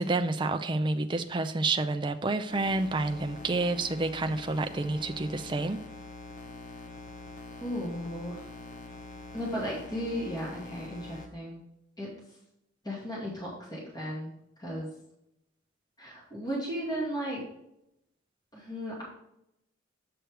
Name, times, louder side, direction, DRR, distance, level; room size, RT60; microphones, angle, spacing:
voice 1, 0.0-5.8, right 2 dB, 25° right, 8 dB, 0.5 m, -29 dB
sound 1, 2.5-11.3, left 2 dB, 40° left, 1.0 m, -45 dB
voice 2, 7.6-8.5 9.3-11.6 12.0-12.2 12.8-14.3 14.6-14.9 16.0-17.4 18.5-19.0, equal, 20° left, -5 dB, 2.3 m, -35 dB
7.9 x 6.2 x 3.4 m, 0.81 s
head